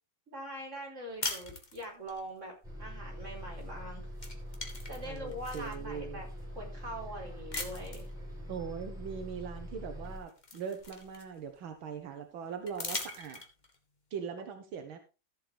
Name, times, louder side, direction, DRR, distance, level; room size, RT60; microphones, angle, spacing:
voice 1, 0.3-2.5 2.8-4.0 4.9-6.3 6.5-8.1, right 1 dB, 35° right, -1 dB, 4.7 m, -42 dB
sound 1, 1.2-2.2 3.6-3.8 4.1-5.8 6.4-6.5 7.5-8.1 9.6-9.7 10.0-11.6 12.7-13.8, left 3 dB, 25° left, 1.5 m, -40 dB
Bus, 2.6-10.2, equal, ahead, 5.4 m, -43 dB
voice 2, 5.0-6.2 8.5-13.4 14.1-15.0, right 6 dB, 85° right, 6 dB, 1.9 m, -41 dB
14.0 x 7.7 x 3.5 m, 0.30 s
omnidirectional pair, 2.2 m